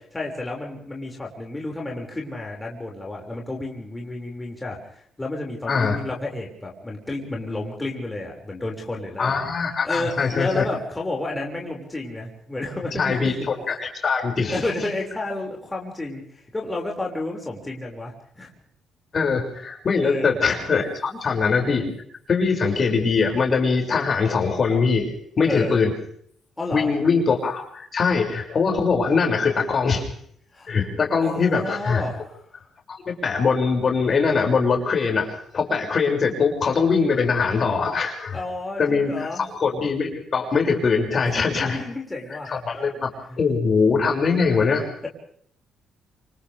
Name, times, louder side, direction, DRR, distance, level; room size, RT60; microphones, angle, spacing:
voice 1, 0.1-9.4 9.8-13.4 14.5-18.5 20.0-20.4 21.1-21.2 25.5-25.8 26.6-26.9 30.5-30.7 31.2-32.3 38.3-39.5 41.4-42.5 43.3-43.4, left 2 dB, 15° left, -1 dB, 6.0 m, -31 dB
voice 2, 9.2-10.6 13.0-14.6 19.1-21.9 22.3-25.9 26.7-30.1 30.7-32.0 32.9-38.4 38.8-41.8 42.5-44.9, left 5 dB, 45° left, 1 dB, 6.7 m, -22 dB
28.0 x 26.5 x 3.6 m, 0.64 s
cardioid pair, 90°, 0 cm